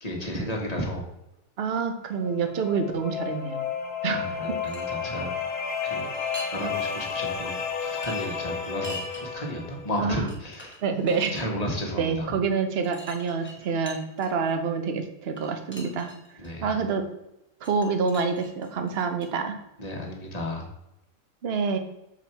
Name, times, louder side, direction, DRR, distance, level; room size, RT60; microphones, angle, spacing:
voice 1, 0.0-1.1 4.1-5.3 5.8-6.1 6.5-10.7 11.3-12.4 16.4-16.8 19.8-20.6, equal, 30° left, 0 dB, 1.7 m, -33 dB
voice 2, 1.6-3.6 4.0-4.3 10.0-10.3 10.8-11.3 12.0-16.1 16.6-17.1 17.6-19.6 21.4-21.8, right 5 dB, 50° right, 6 dB, 1.0 m, -27 dB
sound 1, 2.1-9.9, left 6 dB, 65° left, 1.6 m, -32 dB
sound 2, 4.4-4.9 6.0-6.6 7.0-7.1 7.9-9.2 10.0-10.1 10.3-11.4 12.8-14.5 15.4-16.5 17.6-19.3, equal, 10° left, 1.4 m, -43 dB
7.3 x 4.9 x 4.5 m, 0.89 s
omnidirectional pair, 1.5 m